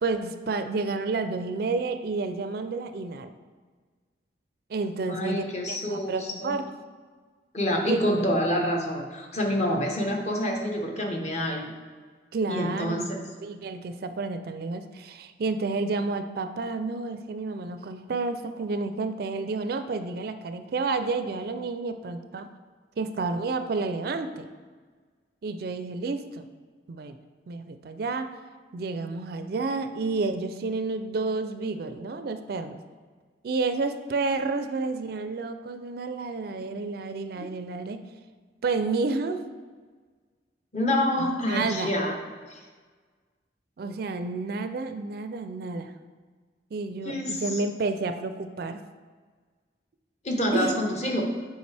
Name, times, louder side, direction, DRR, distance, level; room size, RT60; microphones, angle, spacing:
voice 1, 0.0-3.3 4.7-6.7 7.9-8.0 12.3-13.0 13.4-22.5 23.0-24.5 25.4-26.5 26.9-27.2 27.5-28.3 28.7-32.8 33.4-38.0 38.6-39.4 41.2-41.9 43.8-45.9 46.7-48.8 50.5-50.8, right 3 dB, 55° right, 9 dB, 0.4 m, -30 dB
voice 2, 5.1-6.5 7.5-11.6 12.5-13.2 37.4-37.5 40.7-42.1 42.5-42.6 47.0-47.6 50.2-51.2, equal, 40° left, 1 dB, 1.0 m, -27 dB
7.9 x 4.8 x 3.3 m, 1.5 s
head